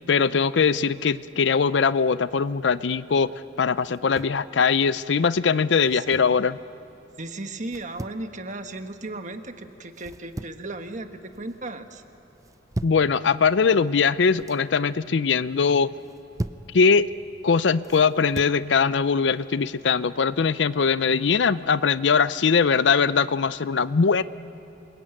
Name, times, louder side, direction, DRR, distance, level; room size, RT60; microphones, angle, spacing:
voice 1, 0.1-3.3 3.6-6.6 12.8-15.9 16.7-17.1 17.4-24.2, left 5 dB, 70° left, 16 dB, 0.5 m, -21 dB
sound 1, 3.9-4.4 5.7-6.4 7.7-8.2 9.9-10.7 11.1-11.6 12.4-13.1 14.1-14.6 16.0-16.7 17.8-18.6, right 1 dB, 20° right, 0.5 m, -37 dB
voice 2, 5.5-6.4 7.2-12.0, right 2 dB, 40° right, 7 dB, 1.4 m, -36 dB
26.5 x 22.0 x 9.1 m, 2.9 s
head